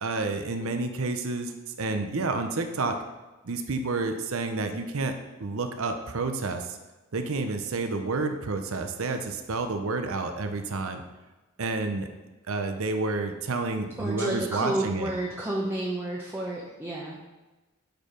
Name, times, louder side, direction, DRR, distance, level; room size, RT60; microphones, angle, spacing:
voice 1, 0.0-3.0 3.4-5.1 5.4-6.8 7.1-11.0 11.6-12.1 12.5-15.1, right 3 dB, 65° right, 6 dB, 0.7 m, -29 dB
voice 2, 14.0-17.2, right 1 dB, 10° right, -3 dB, 0.8 m, -30 dB
7.9 x 4.5 x 5.1 m, 1.1 s
head